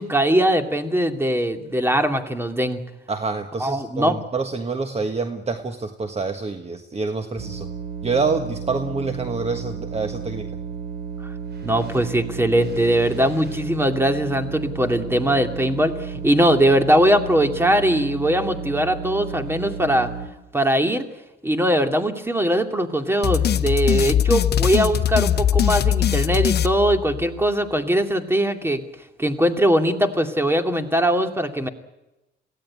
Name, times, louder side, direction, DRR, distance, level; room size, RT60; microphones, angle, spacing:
voice 1, 0.0-2.8 3.6-4.2 11.6-20.1 20.5-21.1 21.4-28.8 29.2-31.7, right 1 dB, 10° right, 6 dB, 2.5 m, -21 dB
voice 2, 3.1-7.7 8.0-10.5, right 4 dB, 30° right, 7 dB, 1.5 m, -27 dB
sound 1, 7.4-20.3, right 6 dB, 60° right, 6.3 m, -33 dB
sound 2, 23.2-27.5, left 10 dB, 55° left, 0.8 m, -21 dB
23.0 x 16.5 x 9.8 m, 0.98 s
cardioid pair, 90°, 20 cm